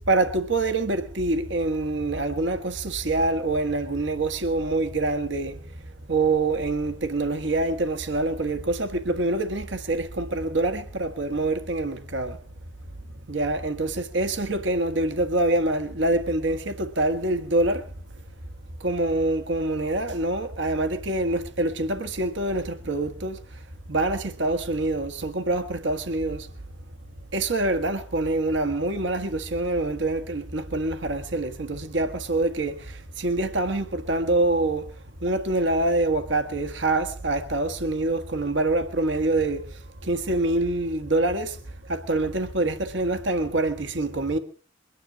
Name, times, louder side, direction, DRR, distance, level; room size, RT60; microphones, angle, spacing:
voice 1, 0.1-12.4 13.3-17.9 18.8-26.5 27.3-44.4, right 2 dB, 85° right, 1.4 m, -26 dB
22.5 x 10.0 x 6.0 m
head